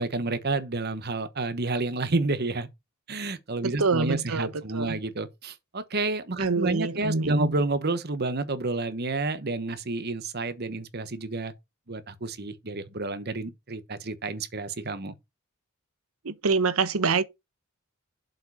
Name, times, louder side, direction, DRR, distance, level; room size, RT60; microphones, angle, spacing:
voice 1, 0.0-2.7 3.1-11.5 11.9-15.1, right 3 dB, 50° right, 1.1 m, -30 dB
voice 2, 3.6-5.0 6.4-7.5 16.2-17.2, right 4 dB, 85° right, 0.9 m, -26 dB
7.6 x 4.9 x 6.4 m
head